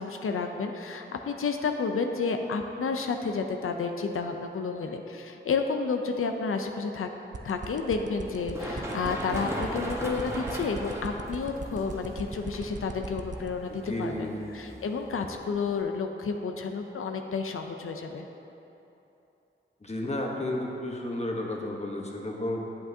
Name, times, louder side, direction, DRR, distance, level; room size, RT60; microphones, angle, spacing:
voice 1, 0.0-7.1 7.4-18.3, left 4 dB, 80° left, 5 dB, 0.5 m, -31 dB
sound 1, 7.3-13.5, right 5 dB, 35° right, 0.4 m, -37 dB
Run, 8.3-15.8, equal, 15° right, 1.1 m, -38 dB
voice 2, 13.7-14.5 19.8-22.6, left 1 dB, 30° left, -1 dB, 1.0 m, -32 dB
8.5 x 7.9 x 2.7 m, 2.9 s
wide cardioid pair, 65°, 21 cm